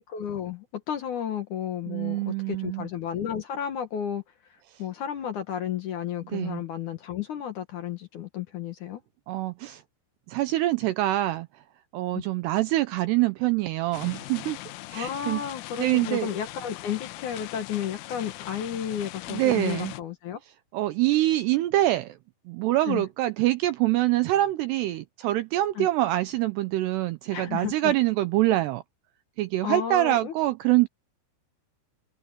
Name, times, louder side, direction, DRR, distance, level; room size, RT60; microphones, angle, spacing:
voice 1, 0.0-4.2 4.5-9.0 12.1-12.2 14.9-20.4 22.9-23.0 25.8-25.9 27.3-27.9 29.6-30.3, left 9 dB, 70° left, 1.8 m, -32 dB
voice 2, 1.9-2.9 6.3-6.6 9.3-9.8 10.3-11.5 11.9-14.6 14.9-15.4 15.8-16.3 19.3-19.9 20.7-22.1 22.5-28.8 29.4-30.9, right 16 dB, 80° right, 2.4 m, -25 dB
sound 1, 13.9-20.0, left 17 dB, 90° left, 3.3 m, -40 dB
open air
omnidirectional pair, 5.6 m